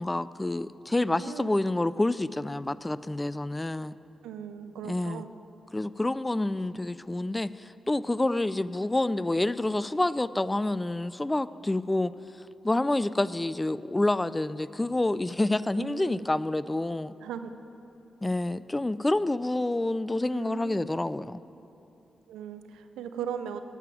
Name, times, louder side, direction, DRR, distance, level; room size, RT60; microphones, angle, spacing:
voice 1, 0.0-3.9 4.8-5.2 5.7-12.1 12.6-17.1 18.2-21.4, left 2 dB, 20° left, 17 dB, 0.3 m, -28 dB
voice 2, 1.0-1.6 4.2-5.3 15.7-16.3 17.2-17.5 20.3-21.0 22.3-23.6, right 8 dB, 85° right, 10 dB, 0.5 m, -39 dB
9.1 x 7.7 x 9.1 m, 2.9 s
supercardioid pair, 40°, 0 cm